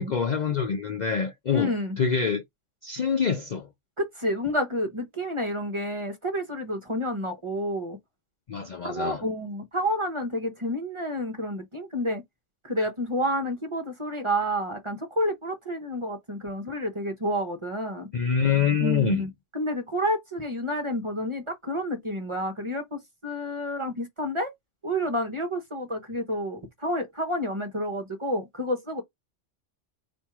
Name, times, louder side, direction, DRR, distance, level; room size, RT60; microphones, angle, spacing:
voice 1, 0.0-2.4 2.8-3.7 8.5-9.2 12.8-12.9 18.1-19.3, left 6 dB, 50° left, 0.5 m, -26 dB
voice 2, 1.5-2.0 4.0-8.0 8.8-12.2 12.6-18.1 18.8-24.5 24.8-29.0, equal, 25° right, 0.9 m, -29 dB
4.4 x 2.6 x 4.7 m
omnidirectional pair, 1.3 m